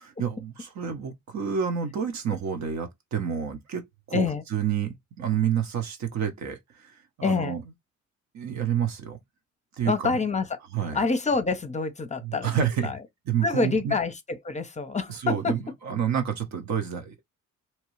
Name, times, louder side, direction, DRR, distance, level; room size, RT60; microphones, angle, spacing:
voice 1, 0.2-7.6 8.3-9.2 9.7-10.2 10.7-11.0 12.2-12.9 13.3-13.9 15.1-17.2, right 8 dB, 65° right, 0.9 m, -29 dB
voice 2, 4.1-4.4 7.2-7.5 9.8-10.5 10.9-13.0 13.4-14.1 14.4-15.5, left 4 dB, 25° left, 0.6 m, -26 dB
2.9 x 2.3 x 3.0 m
cardioid pair, 90°, 30 cm